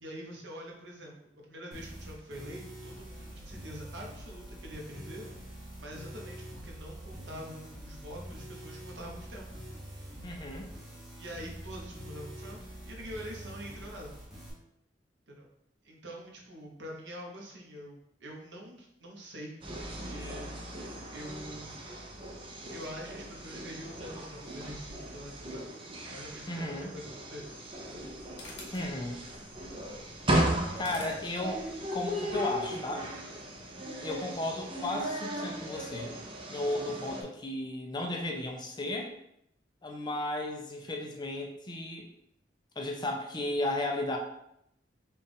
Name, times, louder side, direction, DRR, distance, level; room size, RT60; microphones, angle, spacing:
voice 1, 0.0-5.3 5.8-9.5 11.2-14.1 15.3-15.5 15.8-21.8 22.6-25.7 26.1-27.5 27.9-28.1, equal, 90° right, -1 dB, 1.0 m, -45 dB
sound 1, 1.7-14.5, equal, ahead, 1.0 m, -45 dB
voice 2, 10.2-10.7 26.5-26.9 28.7-29.2 30.8-33.1 34.0-36.2 36.5-39.1 39.8-42.1 42.8-44.2, left 1 dB, 25° left, 1 dB, 0.5 m, -34 dB
sound 2, 19.6-37.2, right 1 dB, 30° right, 0.6 m, -36 dB
sound 3, 27.6-32.0, left 2 dB, 80° left, 1.0 m, -51 dB
4.3 x 2.4 x 3.5 m, 0.77 s
head